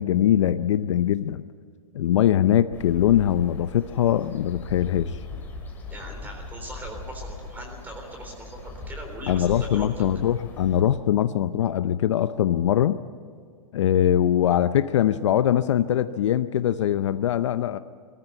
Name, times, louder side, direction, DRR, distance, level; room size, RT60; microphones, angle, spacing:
voice 1, 0.0-1.4 1.9-5.2 9.3-13.0 13.7-17.8, left 11 dB, 55° left, 12 dB, 0.7 m, -22 dB
sound 1, 2.7-10.8, left 3 dB, 10° left, 2.7 m, -39 dB
voice 2, 5.9-10.0, right 1 dB, 10° right, 3 dB, 3.8 m, -40 dB
22.0 x 14.0 x 9.2 m, 2.1 s
hypercardioid pair, 160°, 18 cm